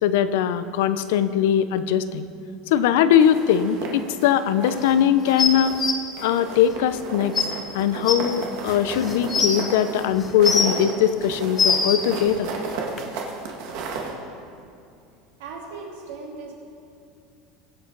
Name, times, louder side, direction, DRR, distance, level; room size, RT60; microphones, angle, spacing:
voice 1, 0.0-2.3 2.7-5.8 6.2-7.3 7.7-12.5, left 9 dB, 75° left, 12 dB, 0.7 m, -21 dB
sound 1, 3.2-4.9 5.3-5.9 6.2-14.1, right 4 dB, 60° right, 1.9 m, -34 dB
sound 2, 5.4-5.9 7.0-7.1 7.3-7.4 8.1-8.2 8.9-9.6 10.2-10.8 11.3-12.0 13.0-13.1, left 5 dB, 20° left, 0.9 m, -21 dB
voice 2, 15.4-16.5, right 4 dB, 85° right, -3 dB, 3.4 m, -37 dB
23.0 x 7.9 x 4.0 m, 2.5 s
supercardioid pair, 170°, 0 cm